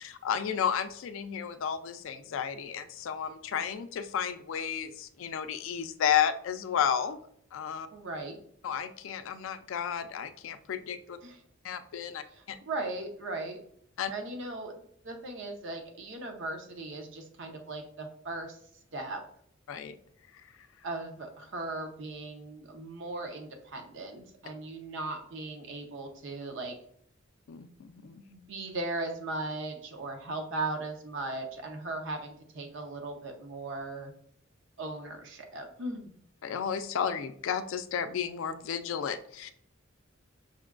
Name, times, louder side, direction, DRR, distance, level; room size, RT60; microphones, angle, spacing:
voice 1, 0.0-7.2 7.5-7.9 8.6-11.2 11.6-12.6 14.0-14.1 19.7-20.0 27.5-28.2 36.4-39.5, left 8 dB, 75° left, 10 dB, 0.4 m, -32 dB
voice 2, 7.9-8.4 11.2-11.4 12.3-13.6 14.1-18.6 18.9-19.2 20.8-26.8 28.3-34.1 34.8-36.1, right 2 dB, 65° right, 4 dB, 0.7 m, -38 dB
5.7 x 2.2 x 2.4 m, 0.66 s
head